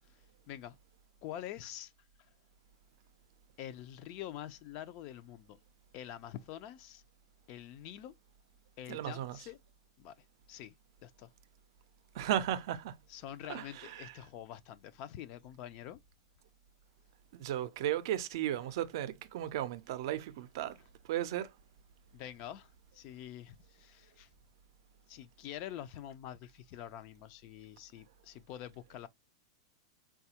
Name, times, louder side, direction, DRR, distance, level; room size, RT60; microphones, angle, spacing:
voice 1, 0.5-0.8 1.2-1.9 3.6-5.6 5.9-7.0 7.5-8.1 8.8-9.6 10.0-10.1 10.5-10.7 11.0-11.3 13.1-16.0 22.1-24.3 25.1-29.1, left 11 dB, 40° left, 0.4 m, -46 dB
voice 2, 8.9-9.4 12.1-12.9 13.5-14.1 17.3-20.8 21.1-21.5, right 11 dB, 60° right, 0.5 m, -35 dB
4.0 x 2.3 x 2.8 m
supercardioid pair, 150°, 3 cm